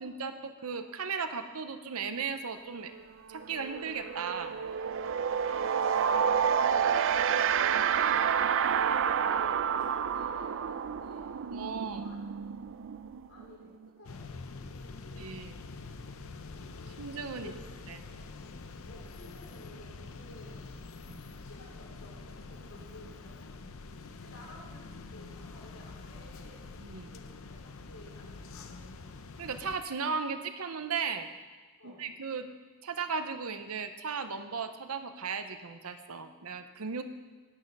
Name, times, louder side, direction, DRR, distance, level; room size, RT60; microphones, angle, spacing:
voice 1, 0.0-2.9 3.3-4.6 11.5-12.1 15.2-15.5 17.0-17.5 17.9-18.0 21.1-21.2 26.8-27.1 29.4-31.3 31.8-32.5 32.8-37.0, right 5 dB, 80° right, 9 dB, 0.8 m, -36 dB
sound 1, 2.8-3.0 3.3-13.9, right 7 dB, 60° right, 0.4 m, -29 dB
voice 2, 5.4-7.0 7.5-11.4 11.9-12.2 12.5-12.6 13.3-15.3 17.3-18.5 18.9-20.7 21.1-26.7 27.1-28.9 31.8-32.1, left 1 dB, 85° left, -4 dB, 4.2 m, -54 dB
sound 2, 14.0-29.8, left 3 dB, 70° left, 0.7 m, -46 dB
10.5 x 9.0 x 5.4 m, 1.4 s
head